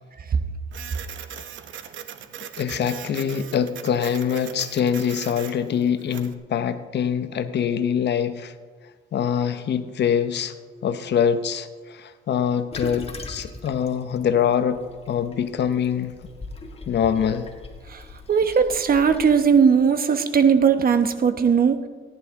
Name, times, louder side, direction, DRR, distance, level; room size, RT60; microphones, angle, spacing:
Printer, 0.7-6.3, right 9 dB, 75° right, 0.9 m, -39 dB
voice 1, 2.6-8.5 9.1-10.5 10.8-16.1 16.9-17.5, left 8 dB, 60° left, 11 dB, 0.9 m, -24 dB
Toilet flush, 12.7-19.3, left 3 dB, 30° left, 1.8 m, -40 dB
voice 2, 18.3-21.8, right 6 dB, 50° right, 9 dB, 1.0 m, -18 dB
18.0 x 11.0 x 3.6 m, 1.5 s
cardioid pair, 90°, 20 cm